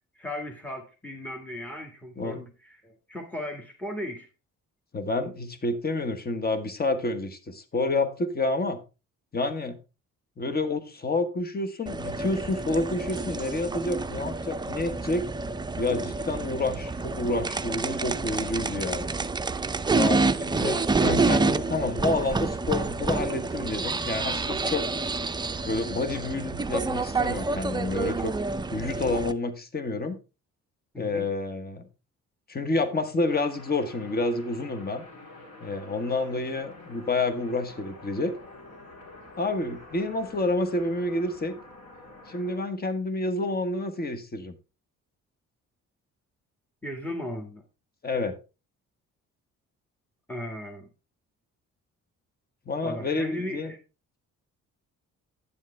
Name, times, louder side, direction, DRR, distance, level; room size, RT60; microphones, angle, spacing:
voice 1, 0.1-4.3 30.9-31.2 46.8-47.6 50.3-50.9 52.8-53.8, left 1 dB, 5° left, 1.6 m, -36 dB
voice 2, 4.9-8.8 9.3-9.8 10.4-15.3 15.8-19.2 19.9-24.9 25.6-28.3 28.7-30.2 31.0-31.8 32.5-35.0 35.6-38.4 39.4-41.5 42.3-44.5 48.0-48.4 52.7-53.7, left 2 dB, 30° left, 1.3 m, -29 dB
sound 1, 11.9-29.3, right 3 dB, 15° right, 0.5 m, -28 dB
sound 2, 33.3-42.6, left 2 dB, 55° left, 3.7 m, -47 dB
10.0 x 7.3 x 3.3 m
cardioid pair, 90°, 30 cm